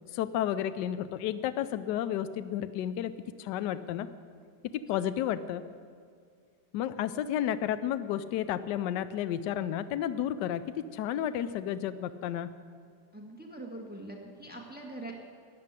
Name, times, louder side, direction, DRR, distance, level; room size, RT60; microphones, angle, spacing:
voice 1, 0.1-3.1 3.4-4.1 4.7-5.6 6.7-12.5, left 10 dB, 75° left, 13 dB, 1.2 m, -32 dB
voice 2, 13.1-15.1, right 1 dB, 5° right, 0 dB, 1.6 m, -43 dB
14.0 x 9.7 x 9.6 m, 2.1 s
omnidirectional pair, 2.0 m